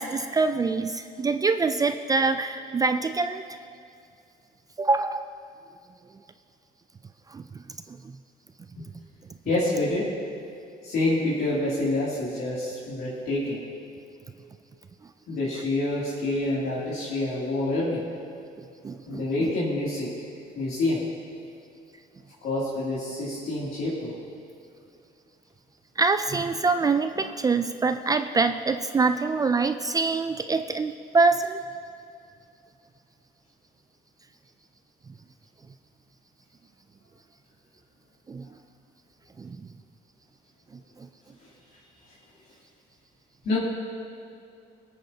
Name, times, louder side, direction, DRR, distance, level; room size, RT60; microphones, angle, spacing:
voice 1, 0.0-3.4 4.8-5.2 7.3-7.4 7.9-8.0 18.8-19.5 26.0-31.6 38.3-38.5 39.4-39.7 41.0-41.1, right 4 dB, 20° right, 9 dB, 0.3 m, -25 dB
voice 2, 9.4-10.1 10.8-13.6 15.3-18.0 19.1-20.1 20.5-21.0 22.4-24.2 43.4-43.6, left 2 dB, 65° left, -9 dB, 2.9 m, -27 dB
22.0 x 9.1 x 2.8 m, 2.4 s
cardioid pair, 110°, 17 cm